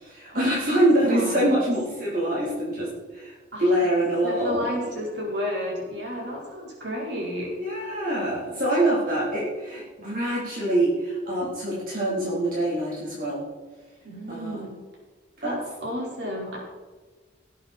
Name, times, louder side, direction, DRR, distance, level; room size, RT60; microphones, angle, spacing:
voice 1, 0.0-3.3 3.6-4.7 7.6-13.4 14.3-14.6 15.4-15.6, right 1 dB, 45° right, -6 dB, 3.9 m, -25 dB
voice 2, 0.8-1.6 3.5-3.6 4.2-7.5 14.0-14.7 15.4-16.6, equal, 65° right, -3 dB, 5.0 m, -32 dB
18.5 x 9.1 x 4.5 m, 1.3 s
head